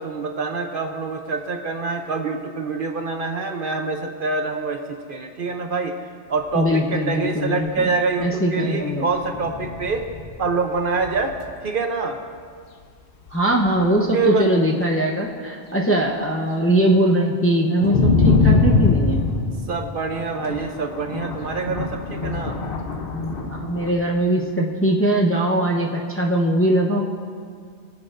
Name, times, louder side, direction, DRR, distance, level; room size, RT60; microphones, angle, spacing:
voice 1, 0.0-4.8 5.1-5.9 6.3-10.0 10.4-11.4 11.6-12.2 14.1-14.5 19.7-22.6, right 4 dB, 55° right, 4 dB, 0.8 m, -25 dB
voice 2, 6.5-7.9 8.2-9.1 13.3-19.2 23.4-27.0, right 1 dB, 15° left, -1 dB, 0.6 m, -21 dB
sound 1, 6.7-6.8 7.0-7.1 7.7-7.8 9.1-11.6 12.8-12.9 13.2-13.9 17.8-23.9, left 3 dB, 55° left, 0.9 m, -23 dB
22.0 x 7.3 x 2.5 m, 2.1 s
omnidirectional pair, 1.2 m